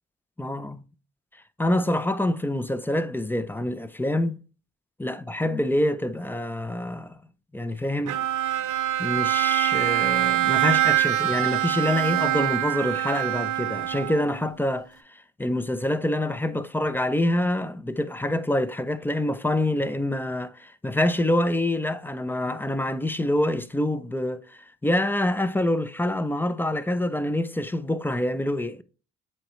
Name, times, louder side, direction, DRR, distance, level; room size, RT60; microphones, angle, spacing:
voice 1, 0.4-0.8 1.6-4.4 5.0-7.2 7.5-8.2 9.0-28.8, left 1 dB, 5° left, 0.5 m, -26 dB
Bowed string instrument, 8.1-14.5, right 14 dB, 75° right, 0.7 m, -24 dB
7.6 x 4.4 x 3.1 m
cardioid pair, 90°, 30 cm